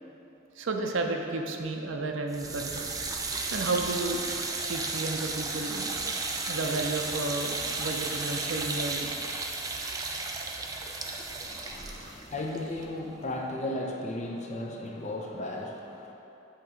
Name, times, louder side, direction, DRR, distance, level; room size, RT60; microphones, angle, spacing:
voice 1, 0.6-2.9 3.5-4.2 4.7-5.9 6.5-9.1 11.8-11.9, right 3 dB, 65° right, 3 dB, 0.5 m, -32 dB
sound 1, 2.3-13.4, right 3 dB, 20° right, 0.4 m, -34 dB
voice 2, 11.4-16.1, left 1 dB, 35° left, 0 dB, 0.6 m, -35 dB
8.4 x 3.0 x 5.0 m, 2.9 s
head